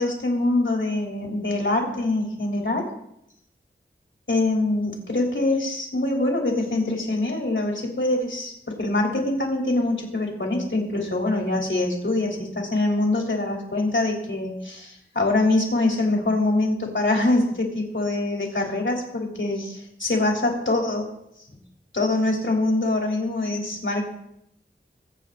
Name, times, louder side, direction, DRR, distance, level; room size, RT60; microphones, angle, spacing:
voice 1, 0.0-2.9 4.3-21.1 21.9-24.1, left 2 dB, 70° left, -1 dB, 3.2 m, -24 dB
22.5 x 7.7 x 3.7 m, 0.76 s
wide cardioid pair, 40°, 21 cm